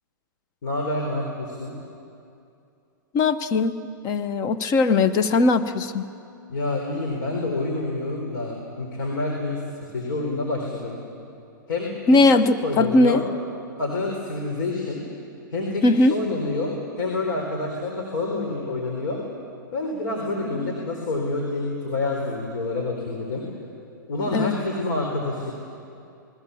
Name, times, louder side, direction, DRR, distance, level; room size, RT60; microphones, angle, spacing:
voice 1, 0.6-1.8 6.5-9.6 9.9-11.0 11.7-11.9 12.6-13.2 13.8-15.0 15.5-15.8 16.1-19.2 19.7-23.4 24.1-25.5, left 2 dB, 65° left, 0 dB, 4.3 m, -27 dB
voice 2, 3.1-3.8 4.0-6.1 12.1-13.2 15.8-16.1 24.3-24.6, left 3 dB, 35° left, 11 dB, 1.1 m, -19 dB
28.0 x 21.0 x 7.2 m, 2.6 s
hypercardioid pair, 115°, 11 cm